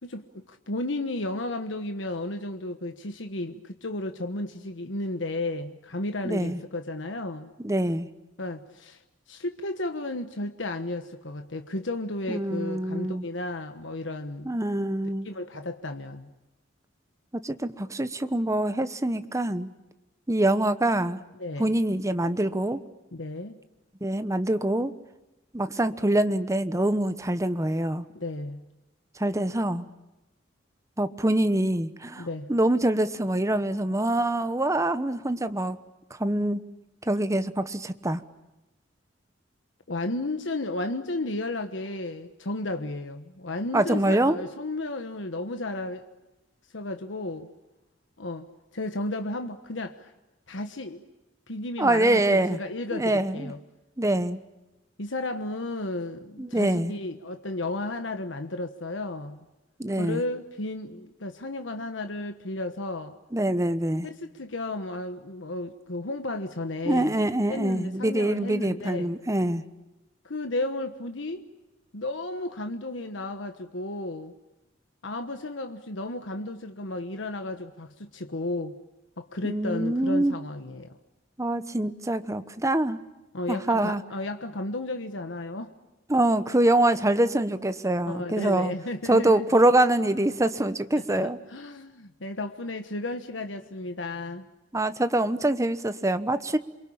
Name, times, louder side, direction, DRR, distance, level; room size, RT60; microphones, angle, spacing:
voice 1, 0.0-7.5 8.4-9.0 9.3-14.6 15.2-16.3 21.4-21.7 23.1-23.6 28.1-28.6 32.2-32.5 39.9-46.0 46.7-47.5 48.2-48.5 48.7-50.1 50.5-51.0 51.5-53.6 55.0-59.5 59.9-63.2 64.0-67.2 67.5-69.1 70.2-71.5 71.9-74.3 75.0-78.8 79.2-81.0 83.3-85.7 88.1-89.5 91.1-94.5, left 2 dB, 90° left, 7 dB, 1.3 m, -33 dB
voice 2, 6.2-6.6 7.6-8.1 12.3-13.2 14.4-15.3 17.4-19.7 20.3-21.2 21.6-22.8 24.0-24.9 25.5-28.1 29.2-29.9 31.0-35.8 36.1-36.6 37.1-38.2 43.7-44.4 51.8-52.6 52.9-53.5 54.0-54.4 56.4-56.9 59.8-60.2 63.3-64.1 66.8-69.6 79.4-80.4 81.4-83.0 83.5-84.0 86.1-88.7 89.1-91.4 94.7-96.6, right 1 dB, 15° right, 11 dB, 1.1 m, -25 dB
28.5 x 23.0 x 8.7 m, 0.99 s
head